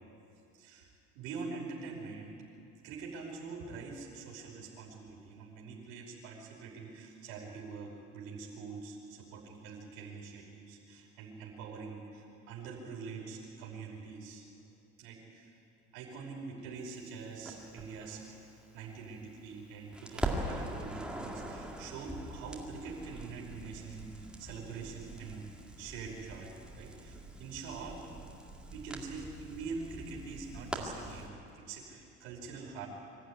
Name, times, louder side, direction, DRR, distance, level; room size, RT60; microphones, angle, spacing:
voice 1, 0.6-2.4 2.8-14.4 15.0-15.6 15.9-18.3 18.7-28.0 28.7-32.9, right 4 dB, 90° right, -2 dB, 5.4 m, -44 dB
Crackle, 17.5-19.6 19.9-31.3, right 1 dB, 5° right, 2.0 m, -42 dB
25.0 x 14.0 x 9.6 m, 2.6 s
cardioid pair, 165°, 29 cm